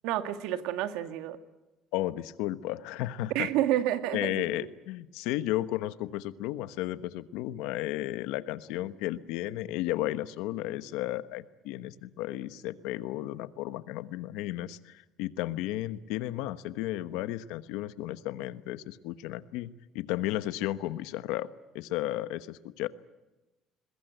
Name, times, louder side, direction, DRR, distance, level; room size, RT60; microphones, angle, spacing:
voice 1, 0.0-1.4 3.3-4.7, right 12 dB, 80° right, 9 dB, 1.8 m, -30 dB
voice 2, 1.9-3.5 4.1-21.5 21.7-22.9, left 15 dB, 85° left, 13 dB, 1.1 m, -33 dB
22.5 x 21.0 x 9.2 m, 1.0 s
cardioid pair, 120°, 0 cm